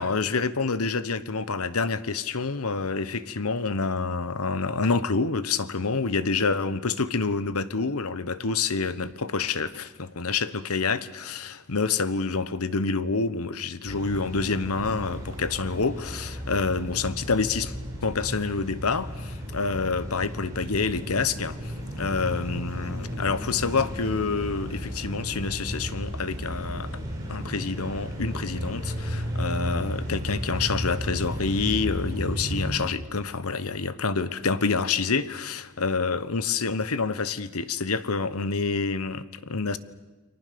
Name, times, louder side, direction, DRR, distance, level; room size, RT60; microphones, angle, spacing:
voice 1, 0.0-17.7 18.0-26.9 27.3-39.8, left 4 dB, 90° left, 1.1 m, -27 dB
sound 1, 13.9-32.8, equal, 15° right, 6.2 m, -34 dB
29.5 x 23.0 x 6.9 m
head